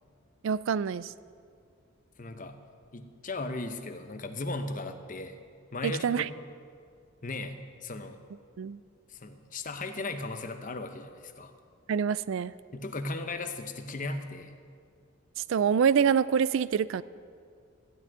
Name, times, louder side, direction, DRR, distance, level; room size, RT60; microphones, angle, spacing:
voice 1, 0.4-1.1 5.8-6.3 8.6-8.8 11.9-12.5 15.4-17.0, right 7 dB, 65° right, 18 dB, 0.3 m, -26 dB
voice 2, 2.2-2.6 2.9-5.4 5.7-6.5 7.2-8.2 9.1-11.5 12.7-14.5, left 2 dB, 40° left, 7 dB, 0.8 m, -37 dB
14.5 x 6.2 x 9.2 m, 2.2 s
head